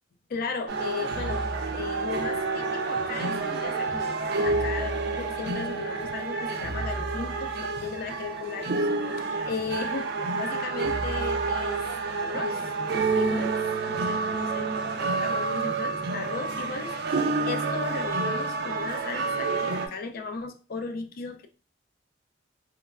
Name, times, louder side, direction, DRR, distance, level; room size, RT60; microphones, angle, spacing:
voice 1, 0.3-11.9 12.2-12.7 13.1-13.6 13.9-21.5, left 4 dB, 50° left, 0.4 m, -36 dB
sound 1, 0.7-19.9, right 3 dB, 55° right, 0.4 m, -29 dB
3.0 x 2.1 x 2.3 m
head